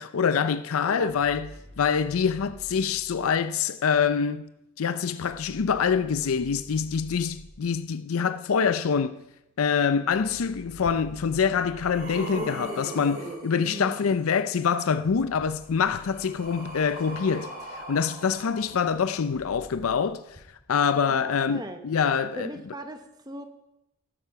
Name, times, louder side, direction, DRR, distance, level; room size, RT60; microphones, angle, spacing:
voice 1, 0.0-4.5 4.8-9.2 9.6-20.2 20.7-22.5, left 6 dB, 85° left, 0.5 m, -25 dB
sound 1, 1.1-3.4 5.3-7.8 10.1-12.7 14.9-17.5 19.3-20.0, equal, 25° left, 4.9 m, -49 dB
sound 2, 10.8-10.9 11.5-14.2 15.4-19.3 20.3-20.4, right 1 dB, 40° right, 5.0 m, -39 dB
voice 2, 13.6-14.0 21.1-21.8 22.4-23.4, right 1 dB, 20° right, 0.9 m, -39 dB
12.5 x 10.0 x 5.8 m
head